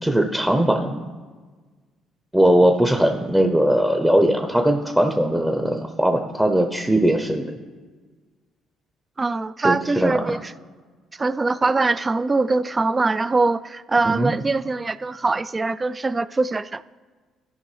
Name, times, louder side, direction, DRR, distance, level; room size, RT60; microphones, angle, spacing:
voice 1, 0.0-1.0 2.3-7.5 9.6-10.2 14.0-14.3, right 1 dB, 5° right, 4 dB, 0.7 m, -19 dB
voice 2, 9.2-10.4 11.2-16.8, right 3 dB, 30° right, 16 dB, 0.3 m, -22 dB
13.5 x 5.2 x 3.3 m, 1.4 s
hypercardioid pair, 50°, 0 cm